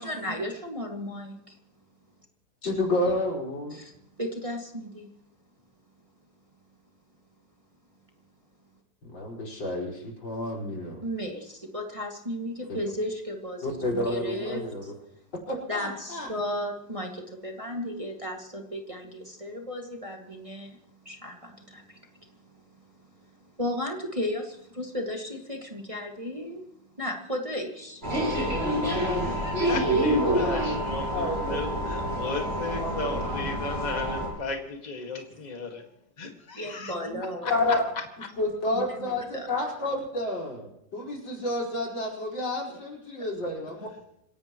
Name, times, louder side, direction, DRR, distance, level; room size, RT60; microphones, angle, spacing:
voice 1, 0.0-1.3 3.7-5.1 11.0-13.8 14.1-14.9 15.7-20.8 21.0-22.6 23.6-26.7 27.0-28.0 36.6-37.5 38.7-38.8 39.3-39.5, left 1 dB, 15° right, 1 dB, 2.0 m, -34 dB
voice 2, 2.6-3.8 9.0-11.0 12.7-12.8 13.6-14.9 15.5-16.3 28.1-29.7 30.2-30.5 31.1-31.6 32.2-32.3 32.8-33.2 37.0-37.2 37.6-37.8 38.4-43.9, left 1 dB, 80° left, -1 dB, 5.7 m, -31 dB
sound 1, 28.0-34.3, right 1 dB, 35° right, 7.5 m, -27 dB
voice 3, 28.9-37.1 37.4-37.8, left 3 dB, 20° left, 3 dB, 2.0 m, -35 dB
27.5 x 17.0 x 3.1 m, 0.77 s
omnidirectional pair, 2.0 m